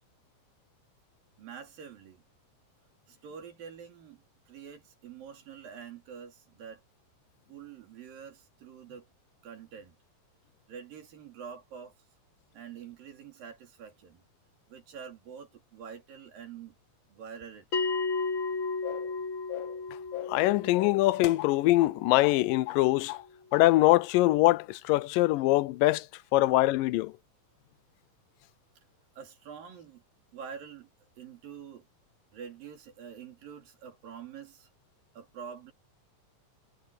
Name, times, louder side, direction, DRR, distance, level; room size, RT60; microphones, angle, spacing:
voice 1, 1.4-2.2 3.1-6.8 7.5-9.1 9.4-10.0 10.7-12.0 12.5-14.2 14.7-16.7 17.1-17.8 29.2-30.0 30.3-31.9 32.3-34.7 35.1-35.7, right 7 dB, 85° right, 4.9 m, -46 dB
Bell, 17.7-22.8, left 4 dB, 40° left, 2.7 m, -34 dB
sound 1, 18.8-19.1 19.5-19.8 20.1-20.4 20.7-22.0 22.2-22.4 22.7-23.3 23.5-23.7, left 17 dB, 75° left, 2.4 m, -38 dB
voice 2, 20.3-23.1 23.5-26.1 26.3-27.1, left 18 dB, 90° left, 2.3 m, -23 dB
omnidirectional pair, 3.9 m